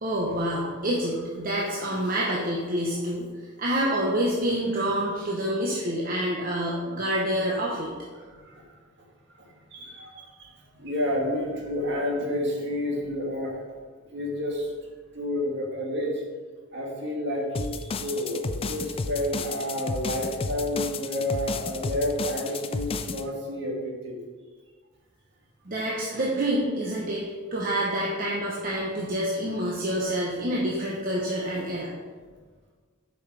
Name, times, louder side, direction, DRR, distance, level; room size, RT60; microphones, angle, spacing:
voice 1, 0.0-3.3 3.6-7.9 25.7-27.2 27.5-31.9, right 1 dB, 45° right, -4 dB, 1.0 m, -27 dB
voice 2, 8.2-8.6 9.7-10.5 10.8-13.5 14.1-14.7 15.1-16.2 16.7-24.3, left 1 dB, 60° right, -1 dB, 1.8 m, -30 dB
sound 1, 17.5-23.2, left 4 dB, 30° left, 0.4 m, -32 dB
7.6 x 5.5 x 4.8 m, 1.5 s
head